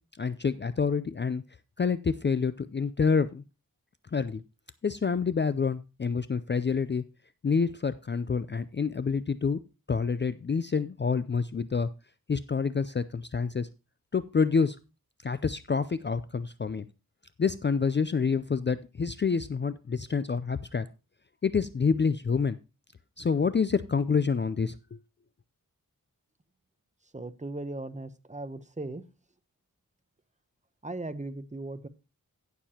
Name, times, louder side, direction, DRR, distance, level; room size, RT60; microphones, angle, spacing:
voice 1, 0.2-1.4 1.8-3.4 4.1-4.4 4.8-7.0 7.4-9.6 9.9-11.9 12.3-13.7 14.1-14.8 15.2-16.9 17.4-20.9 21.4-22.6 23.2-25.0, left 5 dB, 30° left, 14 dB, 0.4 m, -27 dB
voice 2, 27.1-29.0 30.8-31.9, right 2 dB, 20° right, 12 dB, 0.8 m, -38 dB
16.0 x 6.7 x 2.8 m, 0.29 s
wide cardioid pair, 90°, 35 cm